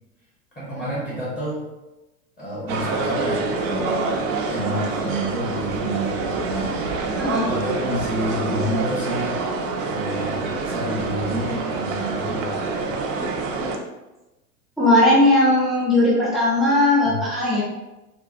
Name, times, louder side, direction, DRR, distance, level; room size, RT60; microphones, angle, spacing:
voice 1, 0.5-1.6 2.4-4.2 4.5-6.9 7.4-9.4 9.8-12.7 17.0-17.2, equal, 15° left, -7 dB, 0.9 m, -29 dB
sound 1, 2.7-13.8, right 3 dB, 55° right, 0.6 m, -26 dB
voice 2, 14.8-17.6, left 1 dB, ahead, -7 dB, 0.4 m, -18 dB
3.7 x 2.2 x 2.5 m, 1.0 s
hypercardioid pair, 105°, 49 cm